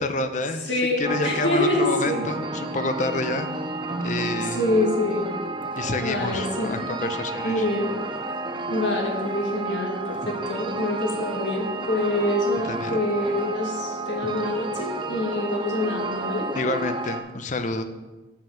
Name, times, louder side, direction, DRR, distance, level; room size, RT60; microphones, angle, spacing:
voice 1, 0.0-3.5 4.0-4.6 5.8-7.6 12.6-13.0 16.5-17.8, left 2 dB, 45° left, 9 dB, 0.6 m, -28 dB
voice 2, 0.7-2.2 4.6-5.3 6.0-6.7 7.4-7.9 8.7-16.5, left 1 dB, 85° left, -1 dB, 2.0 m, -26 dB
sound 1, 1.0-17.2, right 2 dB, 25° right, 0.5 m, -31 dB
7.5 x 5.8 x 5.8 m, 1.2 s
head